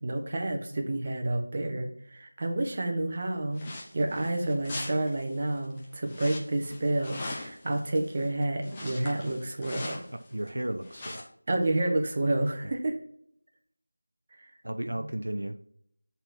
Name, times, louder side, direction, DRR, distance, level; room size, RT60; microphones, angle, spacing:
voice 1, 0.0-10.0 11.5-13.0 15.0-15.1, right 2 dB, 35° right, 1.3 m, -29 dB
sound 1, 3.5-10.5 10.8-11.2, left 2 dB, 15° left, 1.0 m, -41 dB
voice 2, 10.1-11.3 12.6-12.8 14.6-15.6, right 1 dB, 80° right, 0.7 m, -34 dB
8.0 x 4.3 x 6.1 m
figure-of-eight pair, 170°, 0 cm